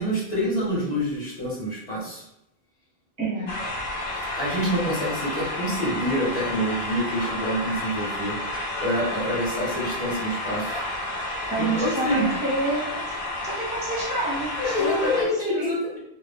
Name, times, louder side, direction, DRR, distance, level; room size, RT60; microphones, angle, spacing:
voice 1, 0.0-2.2 4.3-8.3 8.8-10.8 11.6-12.3 14.6-16.0, equal, 40° left, -6 dB, 1.0 m, -27 dB
voice 2, 3.2-3.5 11.5-13.0 13.4-15.7, right 2 dB, 10° right, -5 dB, 0.6 m, -28 dB
sound 1, 3.5-15.2, left 1 dB, 90° left, 0.9 m, -31 dB
2.5 x 2.2 x 3.4 m, 0.80 s
omnidirectional pair, 1.0 m